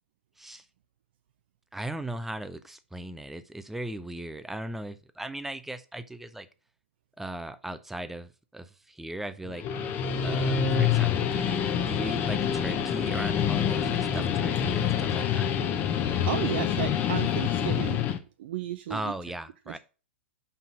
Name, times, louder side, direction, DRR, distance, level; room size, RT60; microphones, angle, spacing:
voice 1, 1.7-6.5 7.2-9.7 10.2-15.5 18.9-19.8, right 1 dB, 5° right, 12 dB, 0.5 m, -38 dB
Guitar, 9.5-18.2, left 8 dB, 30° left, 0.9 m, -26 dB
voice 2, 16.3-18.0 18.4-19.1 19.7-19.8, right 12 dB, 55° right, 10 dB, 0.5 m, -33 dB
5.6 x 4.0 x 6.0 m, 0.35 s
figure-of-eight pair, 110°, 6 cm